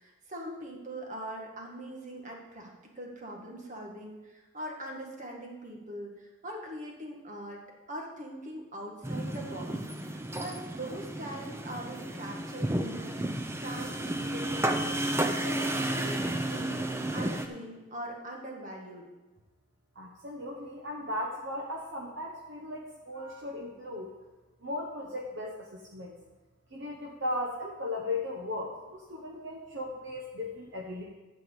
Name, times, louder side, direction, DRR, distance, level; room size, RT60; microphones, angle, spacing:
voice 1, 0.0-7.6 7.9-13.3 13.6-15.0 15.4-19.1, right 1 dB, 35° right, 0 dB, 1.8 m, -42 dB
sound 1, 9.0-17.5, right 1 dB, 10° right, 0.5 m, -32 dB
voice 2, 19.9-24.1 24.6-26.2 26.7-31.0, left 1 dB, 55° right, -1 dB, 1.2 m, -37 dB
11.5 x 4.6 x 8.1 m, 1.2 s
head